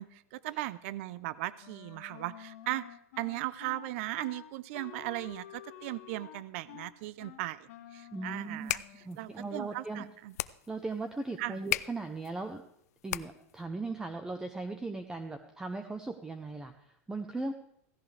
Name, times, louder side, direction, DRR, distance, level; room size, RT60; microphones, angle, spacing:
voice 1, 0.0-2.9 3.2-8.8 9.2-10.3 11.4-11.6, right 17 dB, 55° right, 18 dB, 0.5 m, -37 dB
Wind instrument woodwind instrument, 1.6-9.2, left 12 dB, 70° left, 1.6 m, -50 dB
voice 2, 8.1-8.7 9.1-10.0 10.7-12.6 13.0-17.5, right 3 dB, 10° right, 7 dB, 0.7 m, -38 dB
sound 1, 8.4-13.6, left 13 dB, 90° left, 0.5 m, -39 dB
16.0 x 15.5 x 3.4 m, 0.72 s
supercardioid pair, 150°, 8 cm